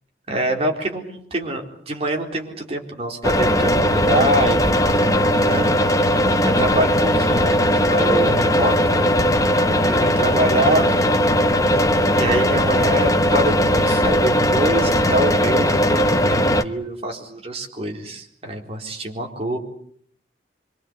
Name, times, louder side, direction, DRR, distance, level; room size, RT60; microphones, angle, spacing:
voice 1, 0.3-8.8 9.8-10.9 11.6-19.6, right 1 dB, 35° right, 1 dB, 4.3 m, -25 dB
sound 1, 3.2-16.6, equal, 20° left, 1.1 m, -18 dB
25.5 x 24.0 x 8.2 m, 0.64 s
head